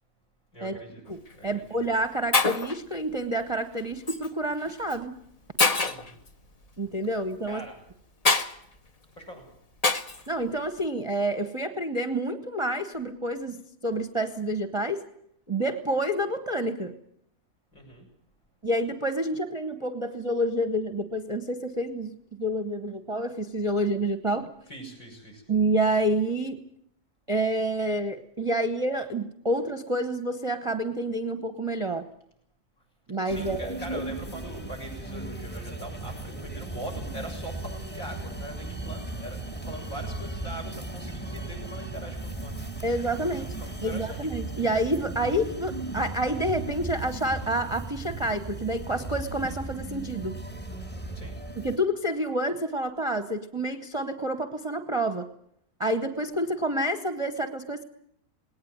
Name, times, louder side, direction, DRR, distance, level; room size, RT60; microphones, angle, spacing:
voice 1, 0.5-1.0 1.3-1.7 5.8-6.2 7.4-7.7 9.2-9.5 17.7-18.1 24.7-25.4 33.2-42.9 43.1-44.3 51.1-51.4, right 1 dB, 55° left, 4 dB, 7.7 m, -42 dB
Shatter, 1.1-1.3 2.0-2.1 2.3-2.8 4.1-4.3 4.9-5.0 5.6-6.1 8.2-8.5 9.8-10.2, left 3 dB, 30° left, 0.9 m, -24 dB
voice 2, 1.1-5.1 6.8-7.6 10.3-13.6 13.8-15.0 15.5-16.9 18.6-24.5 25.5-26.6 27.3-32.1 33.1-34.0 42.8-43.5 43.8-50.4 51.6-55.3 55.8-57.8, right 1 dB, 20° right, 8 dB, 1.0 m, -28 dB
sound 1, 33.3-51.8, right 2 dB, 5° left, 1.4 m, -37 dB
19.5 x 18.5 x 9.4 m, 0.71 s
omnidirectional pair, 1.7 m